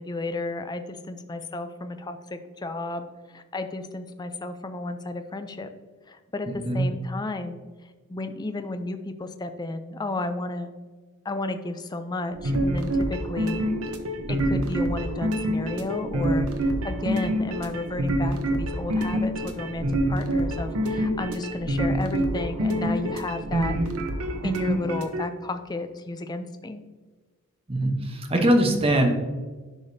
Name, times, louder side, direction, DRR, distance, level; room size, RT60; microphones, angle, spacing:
voice 1, 0.0-5.7 6.1-7.6 8.1-10.7 11.2-13.6 14.3-23.8 24.4-26.8, left 2 dB, 20° left, 8 dB, 0.4 m, -33 dB
voice 2, 6.5-6.9 27.7-29.1, right 1 dB, 25° right, 3 dB, 0.9 m, -22 dB
sound 1, 12.3-25.2, equal, 70° right, 0.9 m, -26 dB
10.5 x 5.0 x 2.7 m, 1.4 s
head